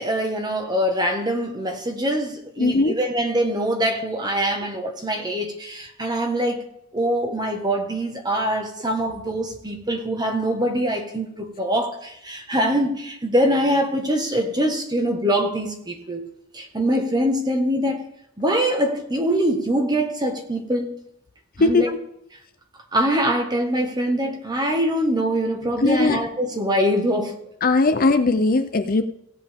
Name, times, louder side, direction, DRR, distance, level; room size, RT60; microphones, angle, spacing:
voice 1, 0.0-6.6 6.9-16.2 16.5-18.0 18.4-21.0 21.6-21.9 22.9-27.4, equal, 20° right, 1.5 m, -23 dB
voice 2, 2.6-2.9 21.6-21.9 25.8-26.2 27.6-29.0, left 3 dB, 45° left, 0.6 m, -19 dB
17.0 x 8.7 x 3.6 m
head